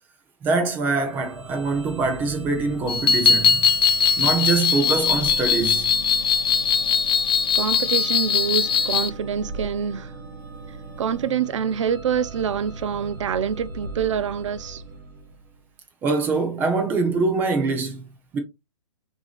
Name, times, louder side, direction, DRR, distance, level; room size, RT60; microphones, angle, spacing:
voice 1, 0.4-3.7 4.2-5.9 16.0-18.0 18.3-18.4, right 3 dB, 10° right, 0.5 m, -24 dB
sound 1, 1.0-15.7, right 2 dB, 40° right, 1.7 m, -39 dB
sound 2, 2.9-9.1, left 6 dB, 45° left, 0.4 m, -20 dB
voice 2, 7.5-10.1 11.0-14.8, right 7 dB, 65° right, 0.5 m, -26 dB
5.9 x 2.8 x 2.3 m
hypercardioid pair, 160°, 17 cm